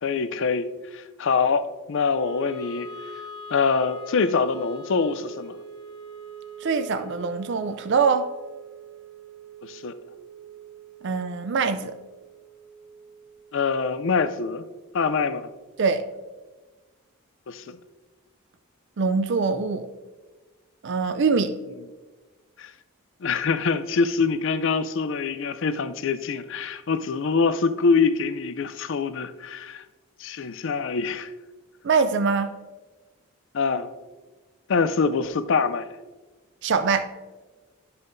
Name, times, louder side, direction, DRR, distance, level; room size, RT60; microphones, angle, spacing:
voice 1, 0.0-2.9 3.5-5.6 9.6-9.9 13.5-14.6 14.9-15.5 17.5-17.8 22.6-22.7 23.2-29.8 30.2-31.3 33.5-33.9 34.7-35.9, left 5 dB, 55° left, 0.4 m, -24 dB
Wind instrument woodwind instrument, 2.1-14.3, right 2 dB, 80° right, 1.3 m, -44 dB
voice 2, 6.6-8.3 11.0-11.9 15.8-16.0 19.0-19.9 20.8-21.5 31.8-32.5 36.6-37.1, right 5 dB, 50° right, 0.4 m, -23 dB
12.0 x 5.6 x 2.6 m
head